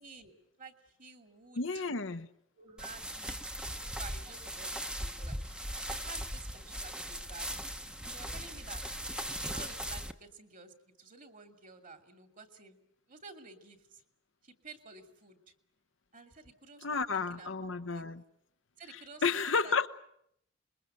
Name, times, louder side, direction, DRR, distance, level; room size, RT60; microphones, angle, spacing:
voice 1, 0.0-1.8 2.6-3.5 3.8-7.6 8.0-8.8 9.4-12.8 13.1-14.0 14.4-15.4 16.1-18.0 18.8-19.2 19.6-19.7, right 4 dB, 45° right, 2.8 m, -52 dB
voice 2, 1.6-2.3 16.8-18.2 18.9-19.9, left 4 dB, 75° left, 1.0 m, -32 dB
sound 1, 2.8-10.1, equal, 5° right, 1.0 m, -39 dB
26.5 x 22.5 x 7.9 m
head